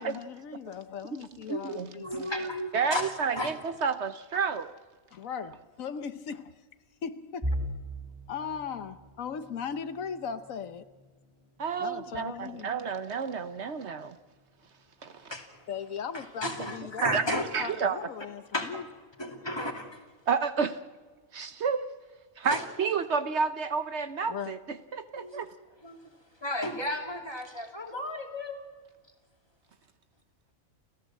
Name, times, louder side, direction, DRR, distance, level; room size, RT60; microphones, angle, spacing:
voice 1, 0.0-2.5 5.1-6.6 7.0-7.6 8.3-10.9 11.8-12.7 15.7-18.8 24.3-24.5, left 7 dB, 80° left, 1.3 m, -38 dB
voice 2, 1.5-2.2 2.7-4.7 11.6-14.2 15.0-15.3 16.4-16.5 17.0-18.0 20.3-20.8 21.3-21.9 22.4-25.5, right 5 dB, 60° right, 1.1 m, -30 dB
voice 3, 2.0-3.5 15.3-15.7 16.1-17.5 18.5-18.8 19.2-20.0 22.4-22.6 25.2-25.5 25.8-26.0 26.4-28.6, left 1 dB, 20° left, 2.8 m, -34 dB
sound 1, 7.4-19.3 19.7-19.9 20.3-20.5 21.4-21.8, equal, 20° right, 7.0 m, -43 dB
30.0 x 14.5 x 7.5 m
omnidirectional pair, 1.4 m